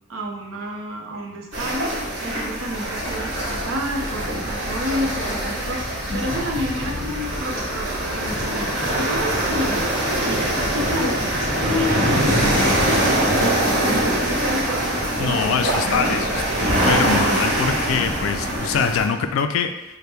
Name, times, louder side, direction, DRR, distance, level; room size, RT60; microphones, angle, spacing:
voice 1, 0.1-9.9 10.2-11.3 11.6-13.9 14.3-14.8 15.2-15.7, left 1 dB, 75° right, 0 dB, 0.7 m, -30 dB
sound 1, 1.5-19.1, right 1 dB, 60° right, 1.3 m, -23 dB
Bus, 3.0-18.6, left 1 dB, 30° right, 0.8 m, -38 dB
sound 2, 5.9-12.3, left 1 dB, 20° left, 0.6 m, -37 dB
voice 2, 15.2-19.7, left 6 dB, 80° left, 8 dB, 0.3 m, -24 dB
5.5 x 2.1 x 3.3 m, 1.0 s
head